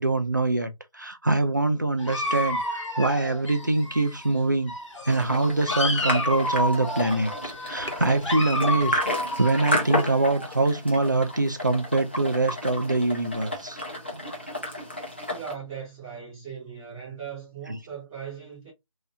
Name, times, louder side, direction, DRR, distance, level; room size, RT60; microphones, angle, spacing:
voice 1, 0.0-4.7 5.1-9.0 9.4-13.8, right 2 dB, 35° right, 0.4 m, -24 dB
Dog, 2.0-4.4 4.7-10.6, left 1 dB, 60° left, 1.0 m, -31 dB
sound 1, 5.1-15.5, left 1 dB, 20° left, 0.5 m, -32 dB
voice 2, 15.3-18.7, right 7 dB, 5° right, 1.2 m, -39 dB
3.1 x 2.7 x 2.7 m
figure-of-eight pair, 170°, 17 cm